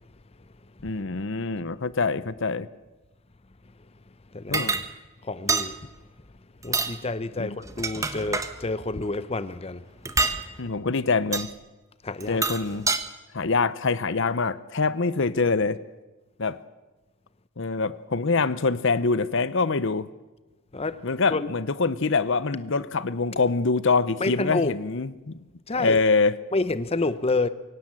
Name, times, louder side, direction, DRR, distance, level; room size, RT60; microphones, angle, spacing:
voice 1, 0.8-2.7 4.5-4.8 7.4-7.6 10.6-11.5 12.3-12.9 13.3-15.8 16.4-16.6 17.6-20.1 21.0-25.3 25.8-26.4, left 4 dB, 60° left, 0.8 m, -25 dB
voice 2, 4.3-4.8 5.3-5.8 6.6-9.8 12.0-12.4 20.7-21.0 21.3-21.5 24.2-24.7 25.7-26.0 26.5-27.5, left 3 dB, 30° left, 0.7 m, -28 dB
sound 1, 4.5-4.8 5.5-5.7 6.6-6.9 7.6-8.5 10.1-10.4 11.3-11.5 12.2-13.0, right 3 dB, 15° right, 1.3 m, -26 dB
24.0 x 17.5 x 7.8 m
head